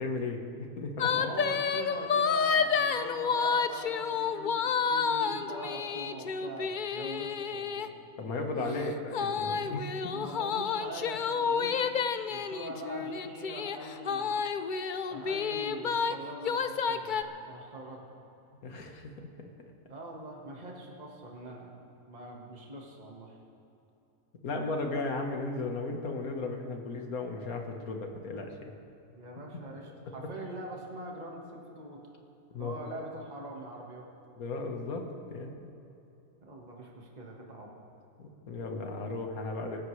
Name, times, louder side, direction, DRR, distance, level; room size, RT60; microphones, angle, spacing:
voice 1, 0.0-1.1 8.2-10.1 18.6-19.5 24.4-28.7 32.5-33.0 34.4-35.5 38.2-39.8, left 3 dB, 80° left, 3 dB, 1.9 m, -35 dB
sound 1, 1.0-7.9 9.1-16.1 16.4-17.2, left 6 dB, 60° left, 0.5 m, -30 dB
voice 2, 1.1-8.3 8.6-8.9 10.1-12.0 12.3-14.4 15.1-18.0 19.9-21.7 22.1-23.4 29.2-32.0 32.6-34.1 36.4-37.8, right 1 dB, 30° right, -1 dB, 1.7 m, -43 dB
26.0 x 13.5 x 3.3 m, 2.9 s
omnidirectional pair, 1.5 m